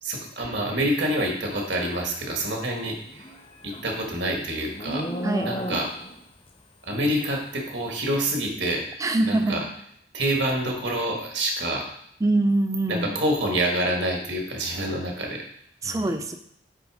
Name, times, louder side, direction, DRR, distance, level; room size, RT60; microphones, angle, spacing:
voice 1, 0.0-3.2 3.6-5.1 5.4-5.9 6.8-9.0 9.2-9.6 10.1-11.9 12.9-15.4 15.8-16.1, right 1 dB, 75° right, 1 dB, 1.5 m, -27 dB
Livestock farm animals working animals, 3.0-6.2, equal, 30° left, 0.6 m, -33 dB
voice 2, 5.2-5.5 9.0-9.6 12.2-13.2 15.8-16.4, right 2 dB, 20° right, 8 dB, 0.4 m, -24 dB
8.0 x 3.4 x 4.8 m, 0.70 s
head